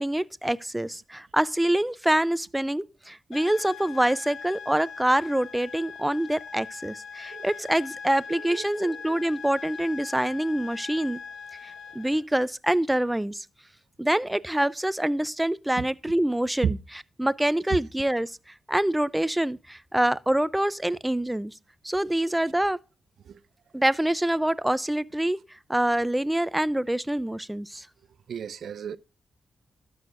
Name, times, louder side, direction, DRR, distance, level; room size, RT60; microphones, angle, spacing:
voice 1, 0.0-11.2 11.6-13.5 14.0-16.8 17.2-18.4 18.7-21.5 21.8-22.8 23.7-25.4 25.7-27.9, right 1 dB, 10° right, 0.4 m, -25 dB
sound 1, 3.3-12.2, left 6 dB, 90° left, 0.6 m, -41 dB
voice 2, 8.3-9.2 15.8-15.9 16.6-16.8 17.7-17.8 23.2-23.4 28.3-29.0, right 7 dB, 75° right, 0.4 m, -32 dB
12.5 x 6.3 x 2.5 m
cardioid pair, 75°, 0 cm